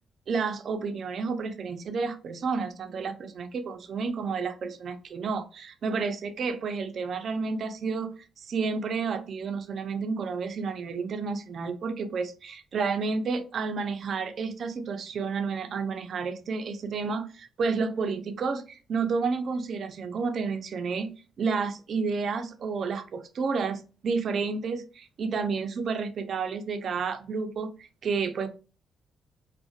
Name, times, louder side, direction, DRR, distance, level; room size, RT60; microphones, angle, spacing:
voice 1, 0.3-21.1 21.4-28.5, right 5 dB, 55° right, 9 dB, 0.4 m, -31 dB
2.5 x 2.1 x 2.3 m, 0.35 s
cardioid pair, 90°, 0 cm